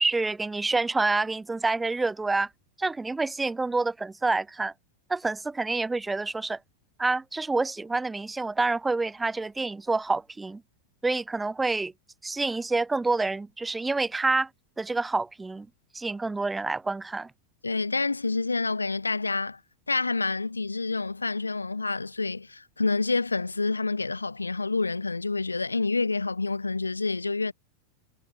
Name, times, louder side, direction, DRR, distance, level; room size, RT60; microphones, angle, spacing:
voice 1, 0.0-2.5 2.8-4.7 5.1-6.6 7.0-10.6 11.0-11.9 12.2-14.5 14.8-15.7 15.9-17.3, right 3 dB, 10° right, 0.8 m, -27 dB
voice 2, 17.6-19.6 19.9-27.5, left 3 dB, 80° left, 1.6 m, -28 dB
figure-of-eight pair, 90°, 0 cm